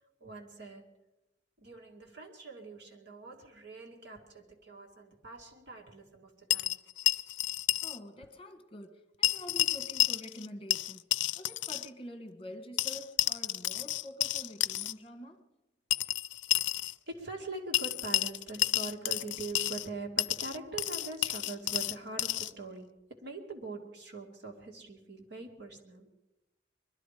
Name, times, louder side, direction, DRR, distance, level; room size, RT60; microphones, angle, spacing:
voice 1, 0.2-1.0 1.6-6.8 17.1-26.2, right 3 dB, 65° right, 1 dB, 2.3 m, -43 dB
sound 1, 6.5-8.0 8.2-8.3 9.2-10.5 10.7-11.9 12.8-14.9 15.9-16.9 17.7-19.9 20.2-22.5, left 14 dB, 75° left, 0.5 m, -31 dB
voice 2, 7.8-11.0 11.3-15.5, left 1 dB, 30° left, 6 dB, 1.5 m, -47 dB
21.5 x 12.5 x 5.0 m, 1.0 s
head